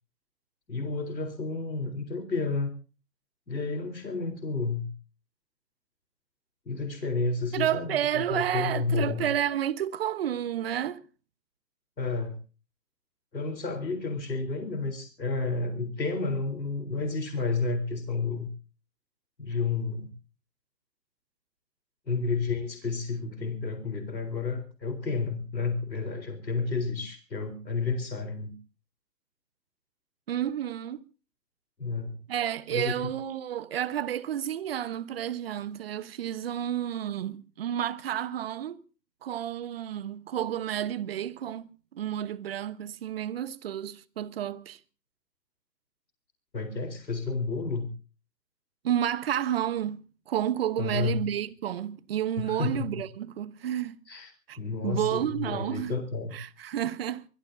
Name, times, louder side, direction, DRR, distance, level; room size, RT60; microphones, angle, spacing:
voice 1, 0.7-2.7 3.5-4.9 6.7-9.2 12.0-12.4 13.3-18.5 19.4-20.1 22.1-28.5 31.8-32.2 32.7-32.9 46.5-47.9 50.8-51.2 52.4-52.9 54.1-56.3, left 4 dB, 85° left, 4.0 m, -31 dB
voice 2, 7.5-11.0 30.3-31.0 32.3-38.8 39.2-44.8 48.8-54.0 54.5-54.6 54.8-55.9 56.3-57.3, right 10 dB, 35° right, 1.2 m, -31 dB
23.5 x 21.0 x 2.7 m
figure-of-eight pair, 140°, 50 cm